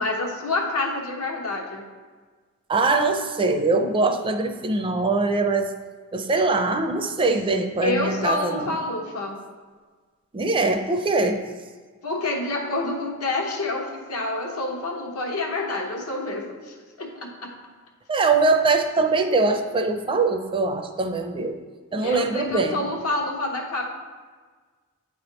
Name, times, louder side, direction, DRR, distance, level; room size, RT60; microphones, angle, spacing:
voice 1, 0.0-1.8 7.8-9.4 12.0-17.5 22.0-23.8, left 2 dB, 80° left, 0 dB, 1.1 m, -28 dB
voice 2, 2.7-5.7 6.1-8.8 10.3-11.4 18.1-21.6 21.9-22.8, right 3 dB, 25° right, 6 dB, 0.4 m, -22 dB
8.7 x 3.4 x 3.9 m, 1.4 s
head